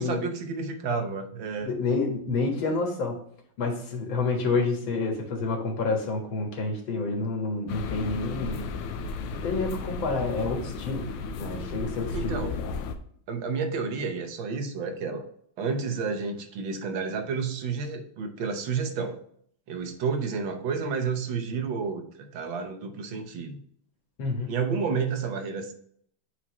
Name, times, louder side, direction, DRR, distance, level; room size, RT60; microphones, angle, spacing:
voice 1, 0.0-1.7 12.1-12.6 13.3-15.3 15.6-19.2 19.7-23.6 24.5-25.7, right 5 dB, 70° right, 6 dB, 1.7 m, -30 dB
voice 2, 1.6-3.2 3.6-8.6 9.4-11.1 11.4-12.4 24.2-24.5, left 3 dB, 65° left, 1 dB, 2.3 m, -28 dB
sound 1, 7.7-13.0, left 4 dB, 90° left, 1.6 m, -34 dB
8.6 x 4.3 x 3.0 m, 0.64 s
omnidirectional pair, 2.3 m